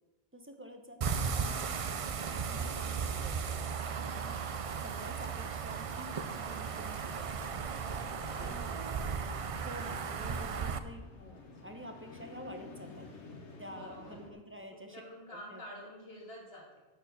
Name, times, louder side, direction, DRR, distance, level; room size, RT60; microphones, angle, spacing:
voice 1, 0.3-1.8 2.3-3.3 4.0-7.5 8.3-8.7 9.6-11.0 11.6-13.1 13.6-15.0 15.3-15.6, equal, 10° right, 4 dB, 0.8 m, -49 dB
sound 1, 1.0-10.8, right 6 dB, 50° right, 0.4 m, -36 dB
sound 2, 6.7-14.3, left 3 dB, 90° left, 1.6 m, -52 dB
voice 2, 7.8-9.0 13.7-14.4 14.7-16.6, left 1 dB, 60° left, -3 dB, 2.8 m, -49 dB
11.0 x 4.5 x 6.9 m, 1.2 s
omnidirectional pair, 1.1 m